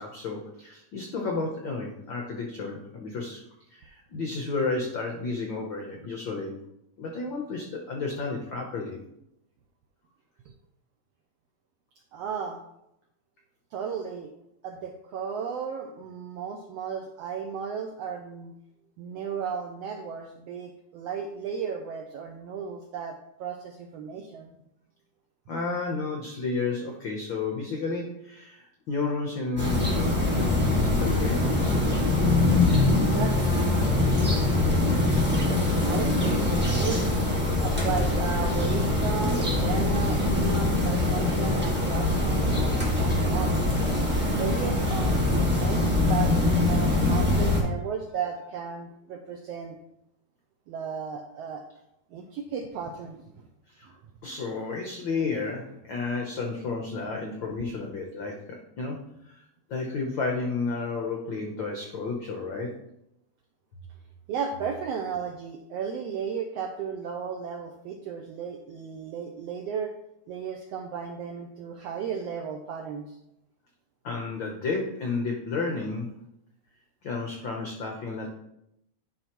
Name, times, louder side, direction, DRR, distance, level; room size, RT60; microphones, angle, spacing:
voice 1, 0.0-3.4 3.7-6.6 7.0-9.0 25.5-31.5 53.8-53.9 54.2-59.4 59.7-62.7 74.0-76.2 77.0-78.3, left 3 dB, 85° left, 1 dB, 1.0 m, -32 dB
voice 2, 12.1-12.6 13.7-14.3 14.6-18.5 19.0-24.5 33.0-33.7 34.0-34.8 35.5-37.0 37.6-43.6 44.3-49.8 50.7-51.6 52.1-53.3 64.3-69.9 70.3-73.0, right 6 dB, 80° right, 3 dB, 1.4 m, -35 dB
sound 1, 29.6-47.6, left 2 dB, 5° right, 0.9 m, -23 dB
sound 2, 37.5-43.8, right 1 dB, 55° right, 1.4 m, -39 dB
10.5 x 5.0 x 3.0 m, 0.80 s
omnidirectional pair, 3.4 m